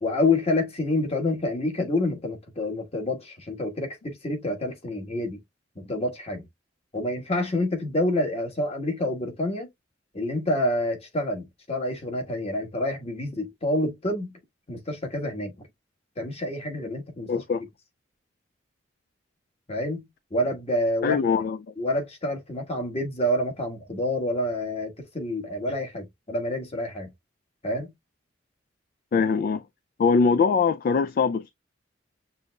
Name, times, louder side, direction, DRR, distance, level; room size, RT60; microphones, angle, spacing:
voice 1, 0.0-5.4 5.8-6.5 6.9-9.7 10.1-14.3 14.7-15.7 16.2-17.3 19.7-21.2 21.8-27.1 27.6-27.9, left 1 dB, 35° left, 1.4 m, -28 dB
voice 2, 17.3-17.6 21.0-21.7 29.1-29.6 30.0-31.5, left 5 dB, 50° left, 0.3 m, -22 dB
6.7 x 2.6 x 2.2 m
head